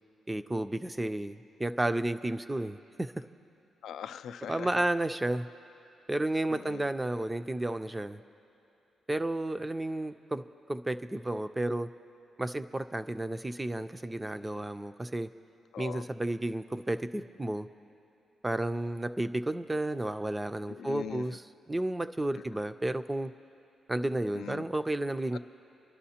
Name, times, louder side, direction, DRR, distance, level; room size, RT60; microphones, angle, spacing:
voice 1, 0.3-3.1 4.5-5.5 6.1-8.2 9.1-10.4 10.7-11.9 12.4-15.3 15.8-17.7 18.4-21.4 21.7-23.3 23.9-25.4, right 1 dB, 15° right, 10 dB, 0.4 m, -32 dB
voice 2, 3.8-4.7 6.5-6.9 15.7-16.1 20.7-21.4 22.3-22.4 24.3-24.6 25.3-25.4, left 9 dB, 80° left, 10 dB, 0.3 m, -41 dB
28.0 x 11.5 x 2.9 m, 2.9 s
cardioid pair, 120°, 0 cm